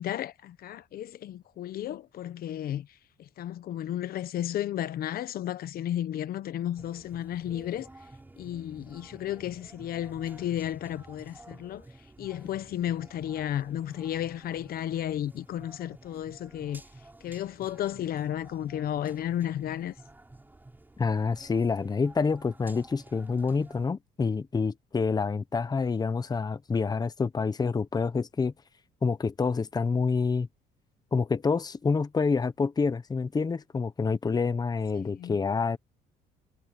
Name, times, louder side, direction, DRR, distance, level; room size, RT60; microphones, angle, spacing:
voice 1, 0.0-2.9 3.2-7.9 8.4-11.8 12.2-16.8 17.2-19.9 34.9-35.4, left 11 dB, 60° left, 1.1 m, -33 dB
sound 1, 6.8-23.9, right 2 dB, 10° right, 4.4 m, -51 dB
voice 2, 21.0-28.5 29.0-30.5 31.1-35.8, left 4 dB, 25° left, 1.1 m, -27 dB
cardioid pair, 110°, 17 cm